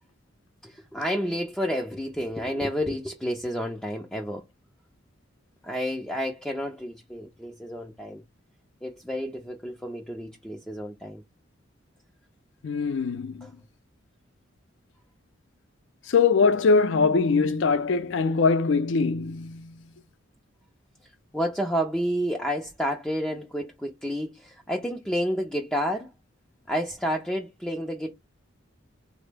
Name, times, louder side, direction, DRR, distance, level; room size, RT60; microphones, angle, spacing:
voice 1, 0.6-4.4 5.6-8.2 8.8-11.2 13.4-13.5 21.3-26.1 26.7-28.1, equal, 5° left, 0.3 m, -30 dB
voice 2, 12.6-13.5 16.1-19.9, left 4 dB, 70° left, 0.4 m, -22 dB
3.6 x 2.0 x 3.2 m
head